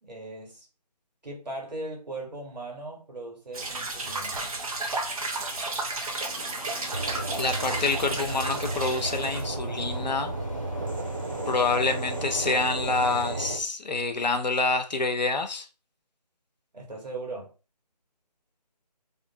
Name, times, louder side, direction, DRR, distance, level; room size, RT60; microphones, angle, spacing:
voice 1, 0.0-0.7 1.2-4.4 16.7-17.5, right 2 dB, 80° right, 1.5 m, -38 dB
sound 1, 3.5-9.5, right 2 dB, 55° right, 0.8 m, -33 dB
sound 2, 6.2-12.8, left 2 dB, 50° left, 0.9 m, -46 dB
sound 3, 6.9-13.6, right 2 dB, 30° right, 0.4 m, -33 dB
voice 2, 7.4-10.4 11.5-15.7, left 3 dB, 90° left, 0.6 m, -27 dB
2.6 x 2.4 x 2.6 m
figure-of-eight pair, 155°, 21 cm